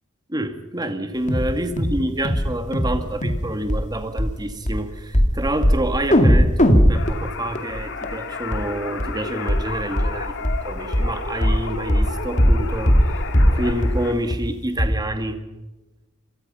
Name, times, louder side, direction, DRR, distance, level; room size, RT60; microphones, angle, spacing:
voice 1, 0.3-12.9 13.5-15.4, right 1 dB, 20° right, 6 dB, 2.4 m, -27 dB
sound 1, 1.3-1.5 1.8-2.0 2.2-2.5 2.7-3.0 3.2-3.4 3.7-3.8 4.2-4.3 4.7-4.8 5.1-5.3 5.6-5.8 6.1-8.1 8.5-8.6 9.0-9.1 9.5-9.6 10.0-10.1 10.4-10.6 10.9-11.1 11.4-11.6 11.9-12.1 12.4-12.6 12.9-13.1 13.3-13.6 13.8-14.0 14.3-14.4 14.8-14.9, equal, 35° left, 2.6 m, -17 dB
sound 2, 6.9-14.1, left 4 dB, 60° left, 2.4 m, -32 dB
27.5 x 23.5 x 5.7 m, 1.1 s
head